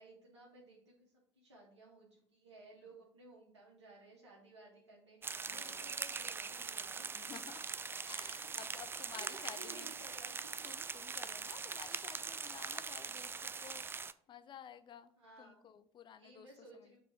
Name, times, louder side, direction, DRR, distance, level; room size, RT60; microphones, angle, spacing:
voice 1, 0.0-7.1 8.8-10.5 15.2-15.7 16.1-17.0, right 2 dB, 85° right, 1.5 m, -57 dB
sound 1, 5.2-14.1, right 5 dB, 15° right, 0.4 m, -42 dB
voice 2, 5.5-6.0 7.1-9.9 10.6-13.8 14.3-16.5 16.7-17.0, left 8 dB, 35° left, 0.7 m, -54 dB
7.0 x 4.1 x 4.5 m
figure-of-eight pair, 65°, 14 cm